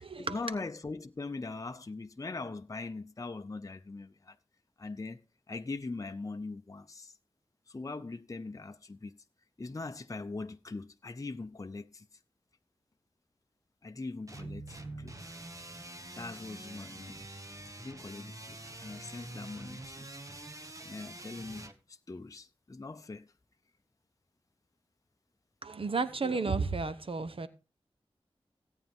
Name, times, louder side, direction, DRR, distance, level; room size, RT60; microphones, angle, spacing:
voice 1, 0.0-4.4 4.8-5.2 5.5-7.1 7.7-9.2 9.6-12.1 13.8-15.2 16.2-17.2 17.8-20.1 20.8-23.3 26.3-26.4, left 3 dB, 35° left, 0.6 m, -41 dB
sound 1, 14.3-21.7, right 2 dB, 30° right, 1.5 m, -46 dB
voice 2, 25.6-27.5, right 4 dB, 60° right, 0.9 m, -32 dB
17.0 x 9.0 x 3.6 m
wide cardioid pair, 60°, 10 cm